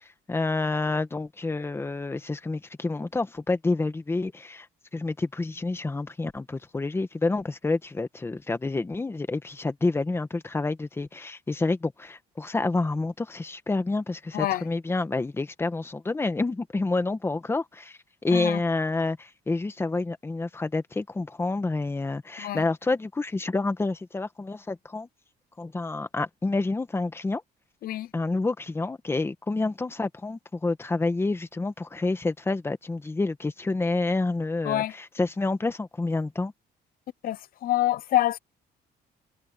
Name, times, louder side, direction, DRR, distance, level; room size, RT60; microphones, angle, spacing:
voice 1, 0.0-4.7 4.9-25.1 25.6-27.4 28.1-36.5, left 3 dB, 15° left, 1.4 m, -28 dB
voice 2, 14.3-14.6 18.3-18.6 22.4-22.6 27.8-28.1 34.6-34.9 37.2-38.4, left 14 dB, 55° left, 0.8 m, -26 dB
cardioid pair, 145°, 17 cm